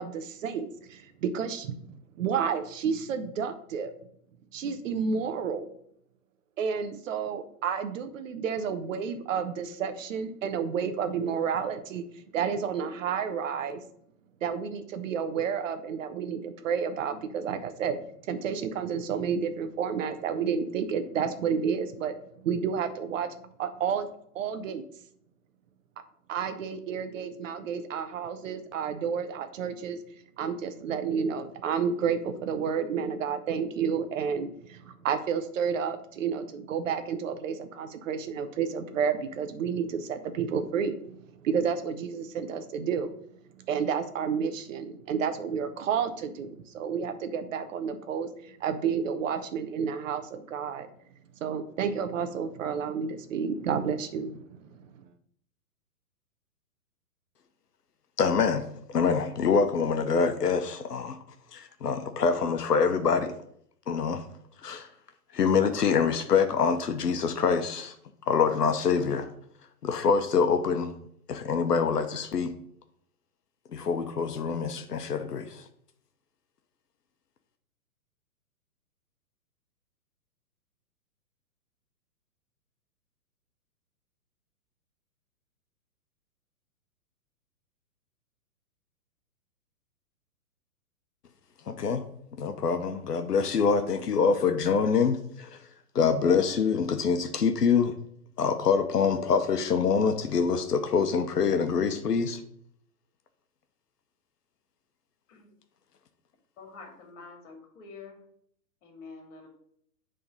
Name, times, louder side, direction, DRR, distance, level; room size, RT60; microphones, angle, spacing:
voice 1, 0.0-1.8 2.2-3.9 4.5-5.7 6.6-13.8 14.4-18.0 18.3-22.1 22.4-24.1 24.3-24.8 26.3-30.0 30.4-41.2 41.4-43.1 43.7-50.9 51.4-54.8, right 6 dB, 55° right, 0.9 m, -30 dB
voice 2, 58.2-61.2 61.5-63.3 63.9-64.2 64.6-64.9 65.3-67.9 68.3-69.3 69.8-70.9 71.3-72.5 73.7-75.6 91.7-92.0 92.4-95.6 95.9-97.9 98.4-102.4, left 5 dB, 85° left, 1.0 m, -25 dB
voice 3, 106.6-108.2 108.8-109.5, left 4 dB, 50° left, 2.6 m, -47 dB
7.0 x 3.7 x 5.3 m
hypercardioid pair, 130°, 46 cm